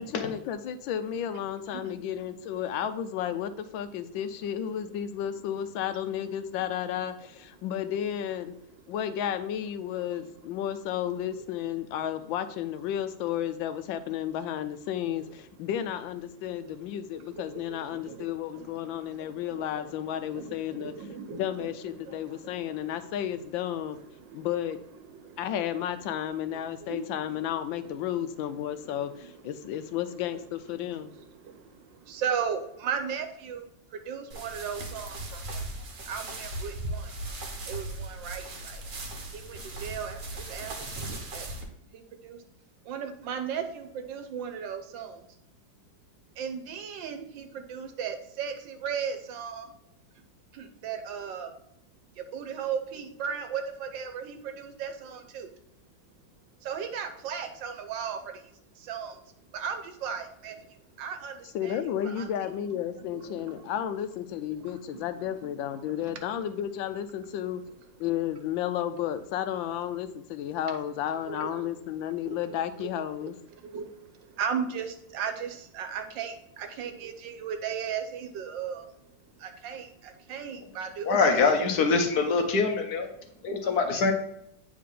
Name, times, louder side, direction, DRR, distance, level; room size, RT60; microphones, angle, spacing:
voice 1, 0.0-8.5 8.9-20.9 21.3-24.0 24.3-24.8 25.4-31.1 61.5-67.6 68.0-73.3, left 10 dB, 85° left, 11 dB, 1.3 m, -32 dB
voice 2, 10.1-10.6 15.2-15.3 16.4-24.5 24.8-25.8 26.1-30.4 30.7-35.6 36.1-37.1 37.6-38.8 39.3-40.9 41.3-41.5 41.9-42.4 42.8-45.3 46.4-49.7 50.5-51.5 52.2-55.5 56.6-62.3 62.9-63.7 64.5-65.3 65.7-66.2 71.0-71.7 72.3-72.4 72.8-72.9 73.5-81.4 83.6-84.1, right 7 dB, 75° right, 7 dB, 1.5 m, -38 dB
sound 1, 34.3-41.6, right 2 dB, 50° right, 1.3 m, -38 dB
voice 3, 81.1-83.1 83.4-84.1, left 4 dB, 60° left, 5 dB, 1.3 m, -24 dB
8.7 x 3.7 x 3.7 m, 0.76 s
omnidirectional pair, 2.1 m